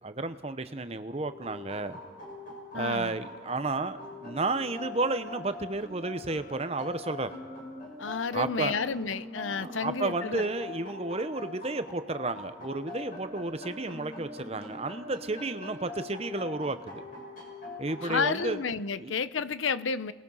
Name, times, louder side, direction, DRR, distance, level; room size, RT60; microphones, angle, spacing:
voice 1, 0.0-2.0 2.7-7.3 8.3-8.8 9.5-17.0 17.8-18.6 19.0-19.1, right 2 dB, 30° right, 11 dB, 0.8 m, -32 dB
sound 1, 1.2-18.5, left 2 dB, 45° left, 6.5 m, -43 dB
voice 2, 2.7-3.2 8.0-10.4 18.0-20.1, left 5 dB, 80° left, 15 dB, 0.7 m, -31 dB
29.0 x 20.5 x 5.6 m, 1.5 s
head